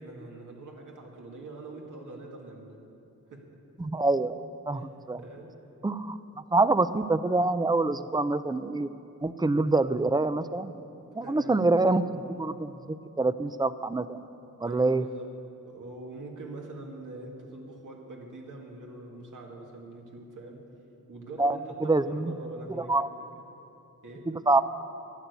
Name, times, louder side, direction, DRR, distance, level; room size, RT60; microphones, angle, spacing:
voice 1, 0.0-2.8 3.3-3.5 4.7-5.5 11.2-11.6 14.6-15.3 15.6-20.6 21.1-22.9 23.4-23.5 24.0-24.3, right 2 dB, 75° right, 0 dB, 2.2 m, -44 dB
voice 2, 3.8-4.4 4.7-5.2 5.8-8.9 9.2-10.7 11.1-14.2 14.6-15.0 21.4-22.3 22.8-23.1 24.3-24.6, right 2 dB, 15° right, 13 dB, 0.4 m, -26 dB
12.0 x 10.5 x 8.1 m, 2.8 s
wide cardioid pair, 105°, 32 cm